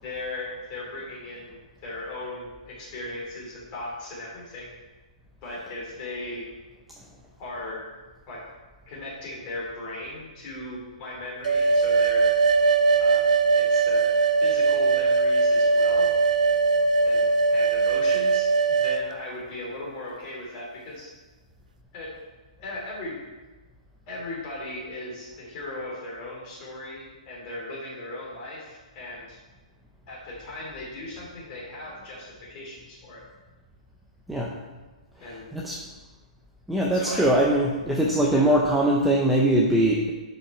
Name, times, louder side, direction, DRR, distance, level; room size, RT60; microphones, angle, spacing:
voice 1, 0.0-4.7 5.4-6.4 7.4-7.8 8.3-8.4 8.9-12.3 13.0-14.1 14.4-16.1 17.0-21.1 21.9-22.1 22.6-23.2 24.1-29.4 30.1-33.2 35.2-35.5 36.9-37.3 38.3-38.5, left 2 dB, 25° left, -5 dB, 2.9 m, -37 dB
sound 1, 11.4-19.0, right 4 dB, 80° right, 0.7 m, -21 dB
voice 2, 36.7-40.1, right 1 dB, ahead, -3 dB, 0.5 m, -21 dB
10.5 x 5.4 x 4.3 m, 1.2 s
hypercardioid pair, 175°, 4 cm